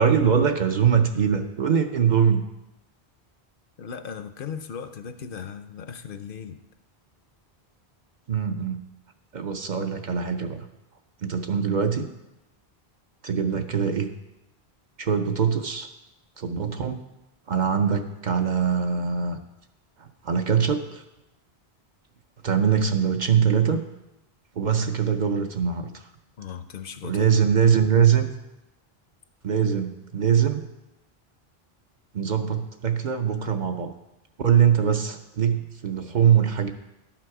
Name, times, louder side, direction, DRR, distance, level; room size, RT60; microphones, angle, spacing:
voice 1, 0.0-2.4 8.3-8.8 9.3-10.6 11.2-12.1 13.2-14.1 15.0-15.9 16.4-17.0 17.5-19.4 20.0-21.0 22.4-23.8 24.6-26.0 27.0-28.3 29.4-30.6 32.1-33.9 34.4-36.7, right 7 dB, 50° right, 6 dB, 0.7 m, -22 dB
voice 2, 3.8-6.6 26.4-27.3, left 7 dB, 65° left, 9 dB, 0.7 m, -37 dB
11.5 x 6.0 x 4.7 m, 0.94 s
omnidirectional pair, 1.1 m